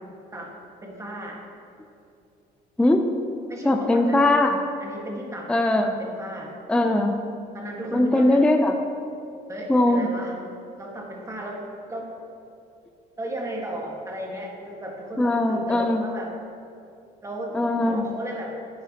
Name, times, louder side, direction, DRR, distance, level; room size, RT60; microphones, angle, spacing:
voice 1, 0.8-1.4 3.5-4.2 4.8-5.5 5.8-6.5 7.5-8.4 9.5-10.3 10.8-11.6 11.9-12.1 13.2-16.3 17.2-18.5, right 1 dB, 20° right, -1 dB, 1.6 m, -34 dB
voice 2, 3.6-4.6 5.5-5.9 6.7-7.1 7.9-8.7 9.7-10.1 15.2-16.0 17.5-18.1, left 1 dB, 5° left, 4 dB, 0.5 m, -20 dB
10.5 x 8.7 x 2.9 m, 2.6 s
cardioid pair, 110°, 17 cm